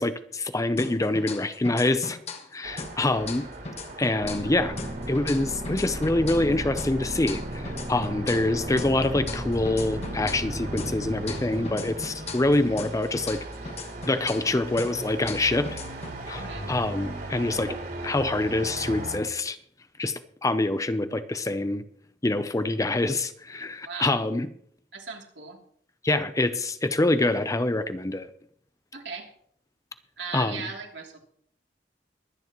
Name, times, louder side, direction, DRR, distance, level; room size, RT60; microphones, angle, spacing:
voice 1, 0.0-2.2 2.5-3.5 4.0-4.8 5.1-13.4 14.1-15.8 16.3-16.4 16.7-17.8 18.0-19.6 20.0-21.8 22.2-24.5 26.0-28.3 30.3-30.7, left 2 dB, 20° left, 11 dB, 0.6 m, -25 dB
sound 1, 0.8-2.5 2.8-6.5 6.8-10.5 10.8-14.5 14.8-16.8, left 3 dB, 40° left, 1.3 m, -39 dB
Traffic noise roadway noise, 2.6-19.2, right 1 dB, 60° right, 3.5 m, -39 dB
sound 2, 4.2-12.7, equal, 35° right, 2.1 m, -35 dB
voice 2, 16.3-16.7 23.9-24.2 24.9-25.6 28.9-29.3 30.2-31.2, right 4 dB, 75° right, 0 dB, 3.0 m, -37 dB
22.5 x 9.6 x 3.0 m, 0.63 s
head